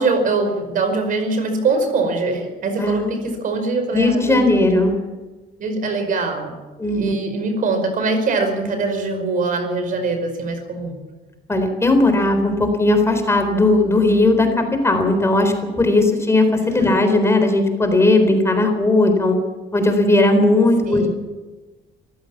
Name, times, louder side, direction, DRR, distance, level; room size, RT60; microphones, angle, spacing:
voice 1, 0.0-4.7 5.6-6.5 6.9-11.0 16.8-16.9 20.9-21.1, right 3 dB, 55° right, 7 dB, 5.1 m, -22 dB
voice 2, 2.8-3.4 3.9-4.9 6.8-7.1 11.5-19.4 19.7-21.1, left 2 dB, 15° left, 6 dB, 3.9 m, -17 dB
24.0 x 15.0 x 7.3 m, 1.2 s
cardioid pair, 110°, 17 cm